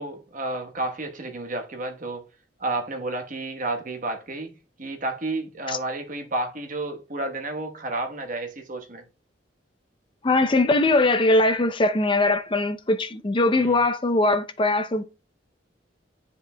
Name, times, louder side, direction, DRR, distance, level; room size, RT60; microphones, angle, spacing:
voice 1, 0.0-2.3 2.6-9.0 13.5-13.8, right 2 dB, 50° right, 1.1 m, -31 dB
voice 2, 10.2-15.0, left 2 dB, 30° left, 0.5 m, -21 dB
9.5 x 5.1 x 2.2 m
head